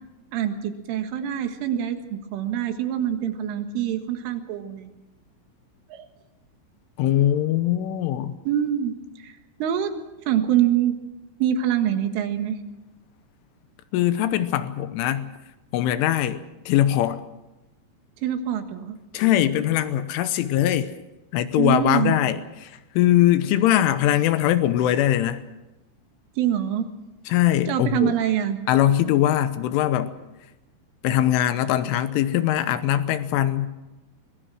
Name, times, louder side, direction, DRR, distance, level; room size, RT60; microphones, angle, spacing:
voice 1, 0.3-4.9 5.9-6.1 8.5-9.0 9.2-9.9 10.3-10.9 11.4-12.6 18.2-19.0 21.6-22.1 26.4-26.9 27.7-28.6, right 10 dB, 85° right, 4.2 m, -25 dB
voice 2, 7.0-8.4 13.9-15.3 15.7-17.2 19.1-20.9 21.3-25.4 27.3-28.1 28.7-30.1 31.0-33.7, left 12 dB, 85° left, 3.4 m, -21 dB
23.5 x 22.0 x 6.3 m
omnidirectional pair, 5.6 m